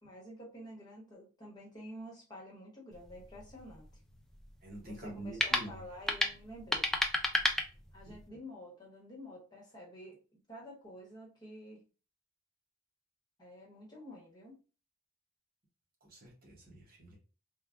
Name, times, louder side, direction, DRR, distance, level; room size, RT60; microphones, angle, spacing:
voice 1, 0.0-3.8 4.8-6.9 7.9-11.8 13.4-14.5, equal, 20° left, 1.2 m, -50 dB
sound 1, 2.9-8.3, left 1 dB, ahead, 0.3 m, -34 dB
voice 2, 4.6-5.8 8.1-8.2 16.0-17.2, right 1 dB, 50° right, 1.0 m, -46 dB
3.4 x 2.3 x 2.5 m
head